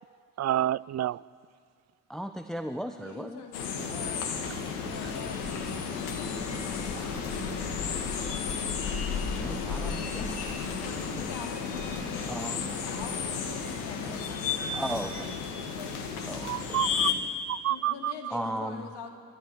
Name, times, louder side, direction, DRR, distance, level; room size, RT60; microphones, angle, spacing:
voice 1, 0.4-1.2 16.4-17.1 17.5-18.1, right 12 dB, 35° right, 21 dB, 0.5 m, -28 dB
voice 2, 2.1-3.4 9.3-10.7 11.1-11.3 12.3-12.6 14.1-14.2 14.7-15.4 16.3-16.8 18.3-18.9, right 1 dB, ahead, 8 dB, 1.1 m, -36 dB
voice 3, 3.0-4.4 4.8-7.5 10.8-14.8 15.4-16.5 17.7-19.1, left 5 dB, 60° left, 3 dB, 3.0 m, -45 dB
sound 1, 3.5-17.1, left 6 dB, 80° left, 1.8 m, -32 dB
29.5 x 13.5 x 9.9 m, 2.2 s
hypercardioid pair, 40°, 45 cm